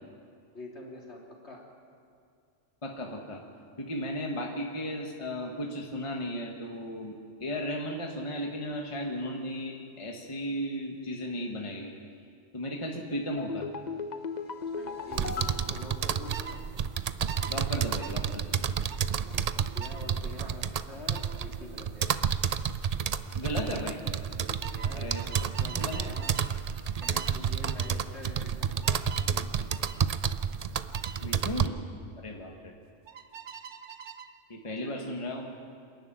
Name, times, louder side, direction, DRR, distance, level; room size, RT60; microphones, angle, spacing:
voice 1, 0.5-1.6 14.7-16.6 19.1-22.1 24.4-26.4 27.0-29.7 32.2-32.4 34.8-35.0, left 1 dB, 60° left, -2 dB, 3.5 m, -46 dB
voice 2, 2.8-3.4 3.8-11.9 12.5-13.7 17.5-18.6 23.3-24.0 24.9-25.5 25.7-26.1 31.2-31.8 32.2-32.7 34.5-35.5, equal, 25° left, 1 dB, 1.6 m, -35 dB
sound 1, 13.4-16.8 17.1-17.2, left 5 dB, 40° left, 0.8 m, -38 dB
sound 2, 15.1-31.7, right 7 dB, 50° right, 0.4 m, -30 dB
sound 3, 16.3-16.6 17.3-17.5 18.0-18.2 18.9-19.1 19.8-20.0 21.1-21.4 22.8-23.1 23.3-23.7 24.6-26.5 27.0-27.4 27.7-28.0 28.8-29.3 29.7-30.0 30.9-31.2 33.1-34.3, right 7 dB, 75° right, 1.2 m, -44 dB
27.5 x 11.0 x 9.0 m, 2.4 s
omnidirectional pair, 1.3 m